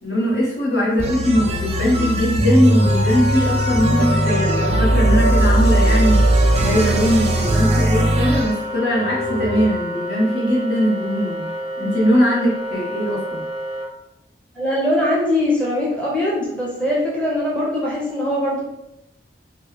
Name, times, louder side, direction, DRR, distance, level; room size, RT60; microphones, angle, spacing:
voice 1, 0.0-6.2 6.6-11.5 11.8-13.4, equal, 70° left, -5 dB, 1.2 m, -20 dB
sound 1, 1.0-8.5, right 1 dB, 35° right, 0.4 m, -18 dB
sound 2, 1.3-3.0 3.8-9.7, right 2 dB, 85° right, 0.6 m, -29 dB
Wind instrument woodwind instrument, 2.6-13.9, left 1 dB, 45° left, 1.3 m, -29 dB
voice 2, 14.5-18.6, left 1 dB, 5° left, -6 dB, 0.6 m, -21 dB
3.1 x 2.2 x 3.5 m, 0.88 s
head